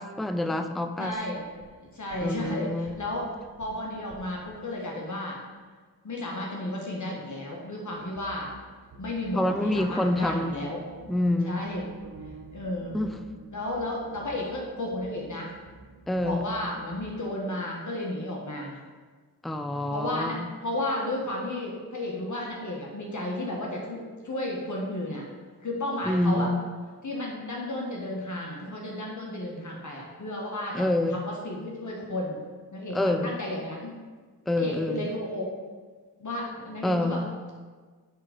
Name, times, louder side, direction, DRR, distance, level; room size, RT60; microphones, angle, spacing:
voice 1, 0.0-1.2 2.2-2.9 9.3-10.6 11.1-11.6 12.9-13.2 16.1-16.5 19.4-20.5 26.0-26.5 30.7-31.2 32.9-33.3 34.5-35.1 36.8-37.3, left 1 dB, ahead, 7 dB, 0.5 m, -27 dB
voice 2, 1.0-1.4 1.9-5.4 6.0-8.5 9.0-10.9 11.4-11.9 12.5-13.0 13.5-15.5 16.2-18.8 19.9-25.2 25.6-26.5 27.0-32.4 32.7-34.0 34.5-35.5 36.2-37.2, left 1 dB, 50° left, -2 dB, 1.5 m, -33 dB
sound 1, 1.1-4.8 7.9-17.1, right 3 dB, 65° right, 1.2 m, -50 dB
8.3 x 3.8 x 5.1 m, 1.5 s
supercardioid pair, 40°, 39 cm